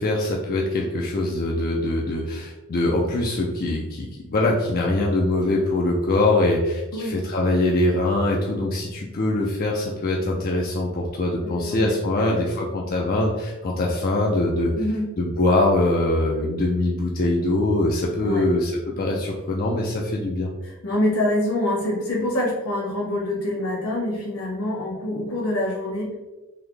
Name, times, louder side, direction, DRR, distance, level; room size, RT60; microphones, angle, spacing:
voice 1, 0.0-14.7 15.2-20.5, left 2 dB, 45° left, -2 dB, 0.4 m, -23 dB
voice 2, 11.4-11.9 12.2-12.3 14.8-15.1 18.2-18.4 20.6-26.2, left 1 dB, 80° left, -3 dB, 1.4 m, -25 dB
4.0 x 2.6 x 3.2 m, 1.1 s
head